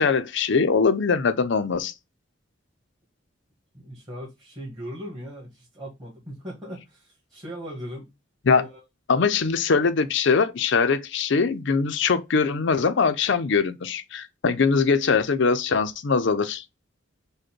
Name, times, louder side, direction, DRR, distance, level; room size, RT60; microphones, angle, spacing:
voice 1, 0.0-1.9 8.5-8.6 9.1-16.6, left 5 dB, 65° left, 0.5 m, -22 dB
voice 2, 3.7-8.1 8.5-8.8, equal, 20° right, 1.4 m, -38 dB
5.1 x 2.2 x 4.4 m
head